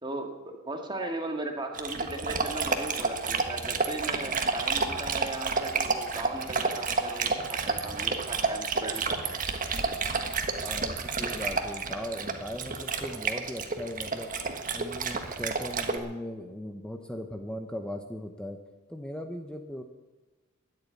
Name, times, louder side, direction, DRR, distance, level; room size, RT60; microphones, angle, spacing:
voice 1, 0.0-9.3, right 2 dB, 20° right, 3 dB, 2.1 m, -37 dB
Dog, 1.7-16.0, right 4 dB, 40° right, 1.5 m, -30 dB
voice 2, 10.6-14.3 14.7-18.6 18.9-19.8, equal, 5° left, 4 dB, 0.9 m, -38 dB
13.5 x 10.5 x 9.6 m, 1.2 s
head